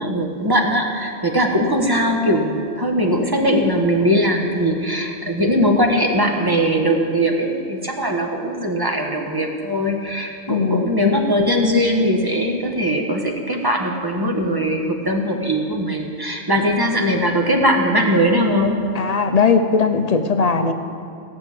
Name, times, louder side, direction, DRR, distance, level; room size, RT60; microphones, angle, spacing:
voice 1, 0.0-18.8, equal, 20° right, 1 dB, 1.3 m, -20 dB
voice 2, 10.5-10.9 18.9-20.7, left 5 dB, 40° left, 7 dB, 0.7 m, -18 dB
17.0 x 6.7 x 8.5 m, 2.4 s
omnidirectional pair, 1.3 m